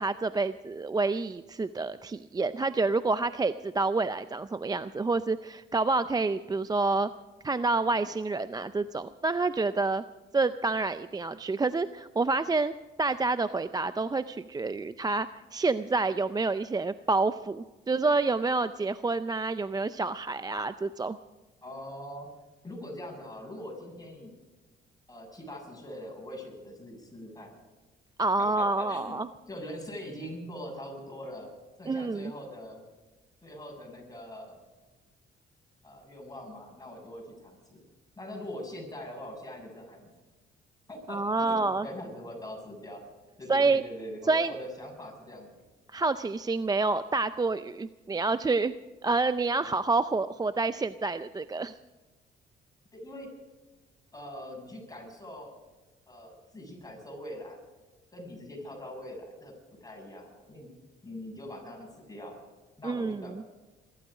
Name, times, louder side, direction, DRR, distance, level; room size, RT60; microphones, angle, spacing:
voice 1, 0.0-7.1 7.4-10.0 10.3-12.7 13.0-21.2 28.2-29.3 31.9-32.3 41.1-41.9 43.5-43.8 44.3-44.5 45.9-48.7 49.0-51.7 62.8-63.4, right 3 dB, 20° right, 13 dB, 0.5 m, -28 dB
voice 2, 21.6-22.3 22.6-24.3 25.1-27.5 28.4-29.2 29.5-31.5 31.8-32.8 33.4-34.6 35.8-37.8 38.2-40.1 40.9-43.0 43.4-45.6 52.9-53.3 54.1-55.5 56.1-57.6 58.1-59.5 59.8-60.7 61.0-62.4 62.8-63.4, left 1 dB, 20° left, 0 dB, 6.8 m, -42 dB
22.5 x 12.5 x 5.0 m, 1.2 s
cardioid pair, 90°, 20 cm